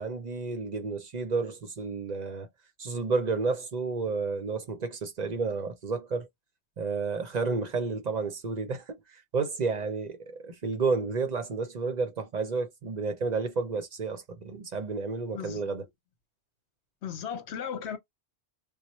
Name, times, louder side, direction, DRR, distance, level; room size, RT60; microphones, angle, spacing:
voice 1, 0.0-2.5 2.8-6.3 6.8-15.8, right 4 dB, 45° right, 0.6 m, -31 dB
voice 2, 15.3-15.7 17.0-18.0, left 8 dB, 75° left, 1.1 m, -36 dB
4.1 x 2.1 x 3.0 m
omnidirectional pair, 1.1 m